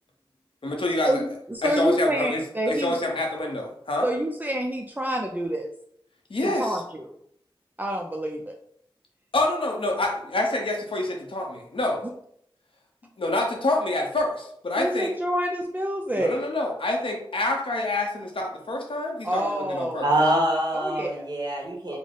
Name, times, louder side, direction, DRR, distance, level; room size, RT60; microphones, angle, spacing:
voice 1, 0.6-1.2 1.6-4.1 6.3-6.8 9.3-12.0 13.2-15.1 16.1-20.0, left 2 dB, 75° left, 1 dB, 0.7 m, -27 dB
voice 2, 1.5-3.0 4.0-5.7 6.4-7.1 7.8-8.5 14.8-16.4 19.2-20.1 20.7-21.3, equal, 20° right, 1 dB, 0.4 m, -27 dB
voice 3, 20.0-22.0, right 1 dB, 50° right, -2 dB, 1.0 m, -24 dB
3.6 x 2.0 x 3.7 m, 0.69 s
wide cardioid pair, 65°, 9 cm